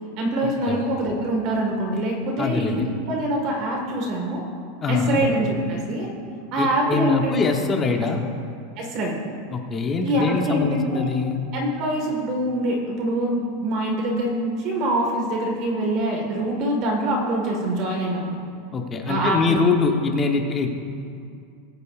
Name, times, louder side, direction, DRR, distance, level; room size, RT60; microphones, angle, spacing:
voice 1, 0.2-4.4 4.9-6.1 6.5-7.4 8.0-8.1 8.8-9.2 10.0-11.0 11.5-18.4 19.1-19.6, right 1 dB, 40° right, 0 dB, 1.5 m, -24 dB
voice 2, 2.4-2.8 4.8-5.2 6.6-8.2 9.5-11.4 18.7-20.7, left 4 dB, 15° left, 3 dB, 0.9 m, -23 dB
20.0 x 8.5 x 2.4 m, 2.4 s
supercardioid pair, 170°, 0 cm